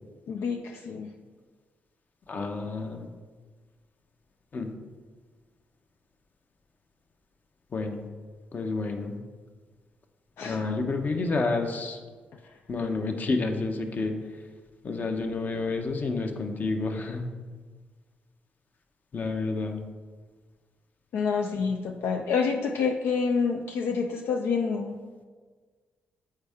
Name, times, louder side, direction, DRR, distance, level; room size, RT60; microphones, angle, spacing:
voice 1, 0.3-1.1 10.4-10.6 21.1-25.0, left 5 dB, 75° left, 2 dB, 0.4 m, -28 dB
voice 2, 2.3-3.1 4.5-4.7 7.7-8.0 8.5-9.2 10.4-12.0 12.7-14.1 14.8-17.3 19.1-19.8, left 3 dB, 45° left, 5 dB, 0.8 m, -29 dB
7.8 x 4.4 x 3.5 m, 1.5 s
cardioid pair, 65°, 4 cm